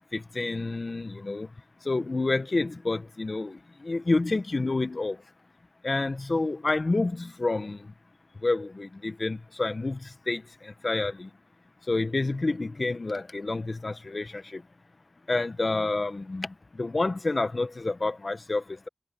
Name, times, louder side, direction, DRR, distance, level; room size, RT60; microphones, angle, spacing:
voice 1, 0.1-1.5 1.8-5.2 5.8-7.8 8.4-11.3 11.9-14.6 15.3-18.9, left 3 dB, 55° left, 1.5 m, -29 dB
cardioid pair, 45°, 0 cm